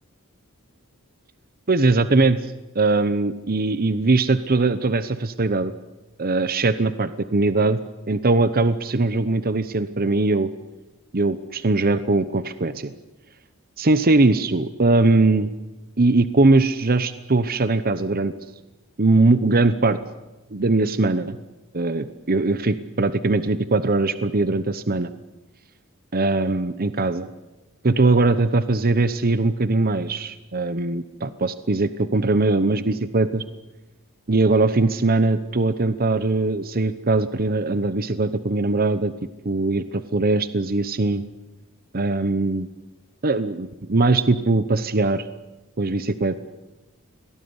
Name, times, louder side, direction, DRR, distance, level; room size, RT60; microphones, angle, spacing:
voice 1, 1.7-2.4 2.7-5.7 6.2-7.8 8.1-10.5 11.1-12.9 13.8-15.5 16.0-18.3 19.0-20.0 20.5-21.4 21.7-25.1 26.1-27.3 27.8-33.4 34.3-39.1 39.4-39.8 40.1-41.2 41.9-42.7 43.2-45.3 45.8-46.3, right 3 dB, 45° right, 13 dB, 0.9 m, -20 dB
23.0 x 18.5 x 9.7 m, 1.1 s
head